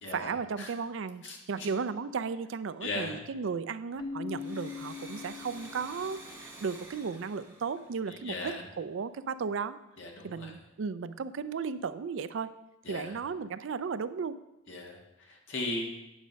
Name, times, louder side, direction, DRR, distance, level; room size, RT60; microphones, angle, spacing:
voice 1, 0.1-1.2 1.5-9.8 10.2-12.5 12.9-14.4, right 5 dB, 65° right, 14 dB, 0.4 m, -35 dB
voice 2, 1.2-1.7 2.8-3.2 8.1-8.6 10.0-10.5 12.9-13.1 14.7-15.9, left 2 dB, 60° left, 0 dB, 1.7 m, -37 dB
Keyboard (musical), 4.0-6.6, left 6 dB, 20° left, 0.5 m, -42 dB
Domestic sounds home sounds, 4.2-8.7, right 2 dB, 10° right, 1.9 m, -50 dB
9.0 x 6.2 x 5.2 m, 0.94 s
head